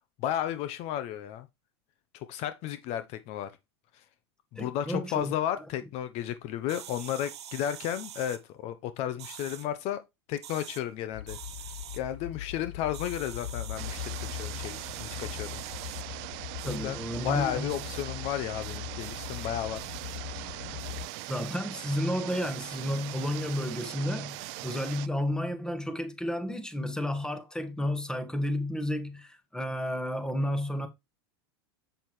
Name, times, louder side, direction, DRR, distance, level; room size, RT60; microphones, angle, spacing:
voice 1, 0.2-1.5 2.1-3.5 4.5-10.0 10.3-11.4 11.9-15.6 16.6-17.0 17.2-19.8 20.4-20.5, left 11 dB, 50° left, 0.8 m, -33 dB
voice 2, 4.6-5.6 16.6-17.8 21.3-30.9, left 1 dB, 5° left, 1.5 m, -32 dB
sound 1, 6.7-8.4 9.2-9.7 10.3-10.8 11.3-12.0 12.9-16.0 16.6-16.8 17.7-18.0 18.6-19.5 19.7-20.2 20.8-21.6 22.3-23.9 24.3-25.0, right 10 dB, 85° right, 1.2 m, -46 dB
sound 2, 11.1-21.1, left 13 dB, 70° left, 0.4 m, -40 dB
sound 3, 13.8-25.1, right 20 dB, 55° right, 0.5 m, -41 dB
7.9 x 6.7 x 3.2 m
hypercardioid pair, 110°, 14 cm